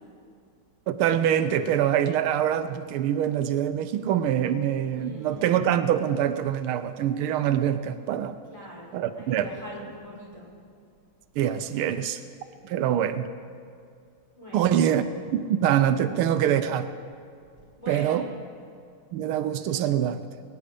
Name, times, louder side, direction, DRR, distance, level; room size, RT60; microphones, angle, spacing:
voice 1, 0.9-8.4 8.9-9.5 11.4-12.2 12.6-13.3 14.5-15.0 15.3-16.9 17.9-18.3 19.1-20.2, right 10 dB, 85° right, 10 dB, 1.5 m, -24 dB
voice 2, 4.9-5.5 8.5-10.5 14.4-14.8 17.8-18.3, left 1 dB, 15° left, -6 dB, 4.6 m, -42 dB
22.5 x 9.8 x 5.2 m, 2.3 s
omnidirectional pair, 2.3 m